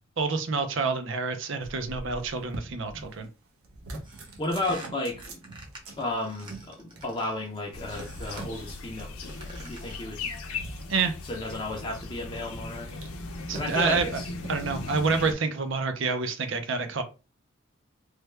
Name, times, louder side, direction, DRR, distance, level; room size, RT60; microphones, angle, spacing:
voice 1, 0.2-3.3 10.9-11.1 13.5-14.2 14.5-17.0, right 4 dB, 60° right, 0.5 m, -28 dB
sound 1, 1.6-3.3 3.6-14.8, right 2 dB, 85° right, 0.8 m, -44 dB
sound 2, 4.0-7.5 7.9-8.6 9.1-10.1, right 1 dB, 20° right, 0.8 m, -49 dB
voice 2, 4.4-5.4 6.0-10.3 11.3-13.0 13.5-14.3, left 2 dB, 25° left, 0.5 m, -33 dB
sound 3, 7.7-15.3, left 3 dB, 85° left, 0.6 m, -38 dB
3.2 x 2.2 x 3.2 m
head